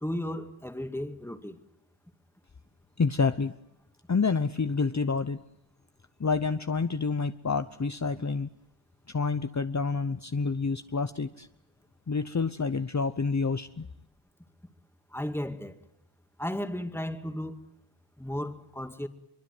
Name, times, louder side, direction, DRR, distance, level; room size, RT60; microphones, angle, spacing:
voice 1, 0.0-1.6 15.1-15.7 16.4-17.6 18.2-19.1, left 1 dB, 5° left, 2.3 m, -34 dB
voice 2, 3.0-3.5 4.1-5.4 6.2-8.5 9.1-11.5 12.1-13.9, left 4 dB, 35° left, 1.0 m, -28 dB
24.5 x 23.5 x 9.7 m
wide cardioid pair, 75°, 46 cm